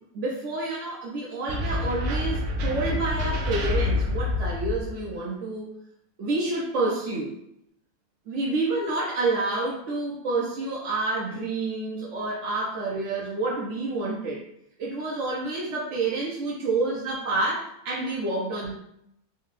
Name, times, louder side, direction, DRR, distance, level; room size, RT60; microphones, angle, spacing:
voice 1, 0.1-5.7 6.2-7.4 8.3-14.4 14.8-18.7, right 2 dB, 60° right, -4 dB, 1.0 m, -28 dB
sound 1, 1.5-5.1, left 2 dB, 80° right, 1.1 m, -27 dB
4.5 x 2.3 x 3.0 m, 0.75 s
omnidirectional pair, 1.6 m